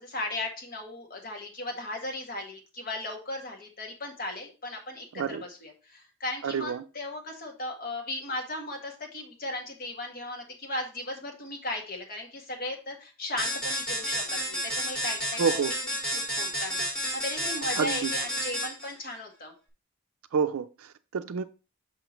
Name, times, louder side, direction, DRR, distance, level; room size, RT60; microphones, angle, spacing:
voice 1, 0.0-15.6 16.1-19.5, left 2 dB, 45° left, 1.5 m, -36 dB
voice 2, 6.4-6.8 15.4-15.7 17.8-18.1 20.3-21.4, right 6 dB, 80° right, 0.4 m, -28 dB
sound 1, 13.4-18.9, equal, 5° left, 2.2 m, -31 dB
5.7 x 5.6 x 3.0 m
head